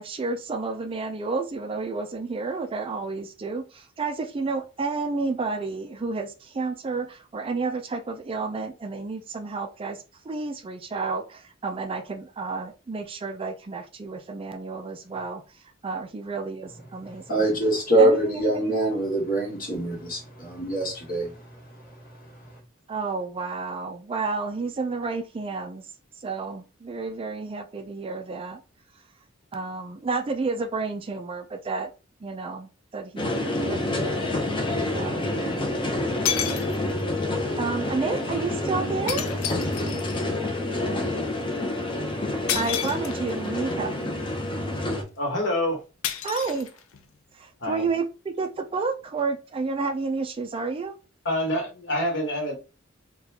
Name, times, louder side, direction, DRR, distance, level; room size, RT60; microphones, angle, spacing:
voice 1, 0.0-17.5 18.0-18.9 22.9-25.8 26.2-28.6 29.5-31.9 32.2-33.3 33.7-34.3 34.7-35.6 37.6-39.3 42.5-44.1 46.2-46.7 47.3-51.0, right 4 dB, 25° right, 0.3 m, -31 dB
voice 2, 17.3-21.4, right 1 dB, 45° left, 1.5 m, -23 dB
sound 1, 33.2-45.0, left 1 dB, 25° left, 0.6 m, -28 dB
sound 2, 33.5-33.6 35.7-35.8 36.3-37.1 39.1-40.3 42.5-43.5 46.0-47.1, left 9 dB, 90° left, 0.5 m, -31 dB
voice 3, 45.2-45.8 47.6-47.9 51.2-52.5, left 1 dB, 60° left, 1.3 m, -26 dB
4.0 x 2.3 x 2.8 m
head